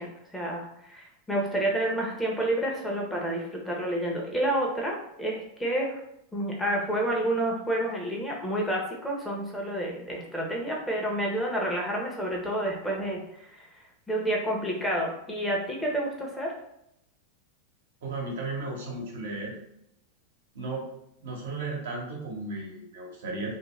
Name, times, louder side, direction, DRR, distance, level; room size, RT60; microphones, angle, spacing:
voice 1, 0.0-6.0 6.3-16.5, right 1 dB, 10° left, -2 dB, 0.9 m, -29 dB
voice 2, 18.0-19.5 20.5-20.8 21.2-23.5, right 3 dB, 75° right, -2 dB, 1.0 m, -34 dB
2.5 x 2.1 x 3.1 m, 0.79 s
hypercardioid pair, 100°, 0 cm